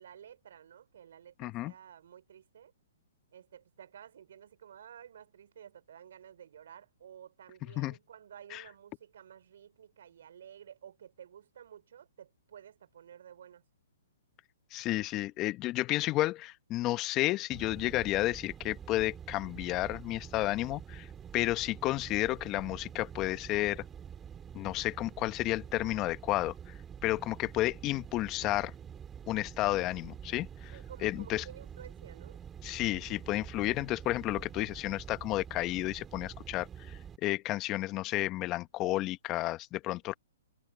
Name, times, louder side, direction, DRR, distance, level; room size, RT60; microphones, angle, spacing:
voice 1, 0.0-2.7 3.3-13.6 21.4-21.5 30.7-32.4, right 9 dB, 65° right, 4.6 m, -52 dB
voice 2, 1.4-1.7 7.8-8.0 8.5-8.6 14.7-21.1 21.3-23.8 24.5-26.7 27.0-28.7 29.3-31.4 32.6-40.1, left 17 dB, 30° left, 1.0 m, -32 dB
sound 1, 17.5-37.2, right 8 dB, 15° right, 4.3 m, -47 dB
hypercardioid pair, 135°, 0 cm